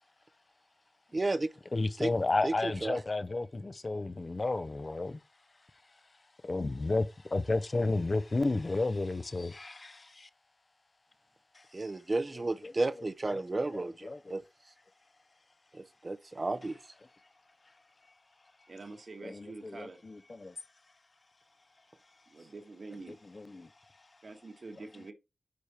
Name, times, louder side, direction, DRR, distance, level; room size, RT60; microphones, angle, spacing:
voice 1, 1.1-1.5 2.0-2.1 2.4-3.0 11.7-14.4 15.7-16.8, right 2 dB, 35° right, 0.6 m, -33 dB
voice 2, 1.7-5.2 6.4-10.3 11.5-11.6 12.6-12.7 13.3-13.4 13.7-14.4 19.2-20.5 23.3-23.7, left 2 dB, 35° left, 0.6 m, -32 dB
voice 3, 18.7-20.0 22.3-23.2 24.2-25.1, right 3 dB, 55° right, 1.6 m, -46 dB
9.5 x 3.4 x 4.3 m
wide cardioid pair, 110°, 0 cm